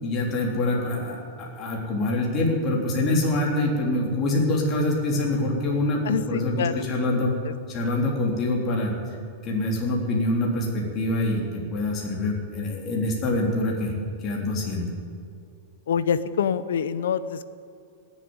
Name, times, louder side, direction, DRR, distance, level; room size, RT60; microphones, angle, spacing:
voice 1, 0.0-7.3 7.7-8.9 9.4-13.9 14.2-14.9, left 1 dB, 30° left, -2 dB, 3.2 m, -25 dB
voice 2, 6.0-6.8 7.4-7.5 15.9-17.4, left 7 dB, 90° left, 14 dB, 0.8 m, -26 dB
18.0 x 7.5 x 9.7 m, 2.4 s
supercardioid pair, 145°, 0 cm